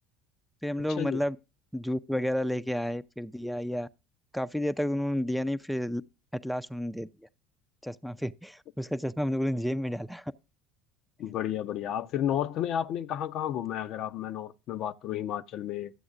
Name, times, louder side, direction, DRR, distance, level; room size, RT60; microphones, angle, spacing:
voice 1, 0.6-1.4 1.7-3.9 4.3-6.0 6.3-7.1 7.8-10.3, equal, ahead, 0.4 m, -31 dB
voice 2, 11.2-15.9, left 10 dB, 50° left, 0.5 m, -32 dB
12.5 x 7.8 x 2.5 m
figure-of-eight pair, 65°, 0 cm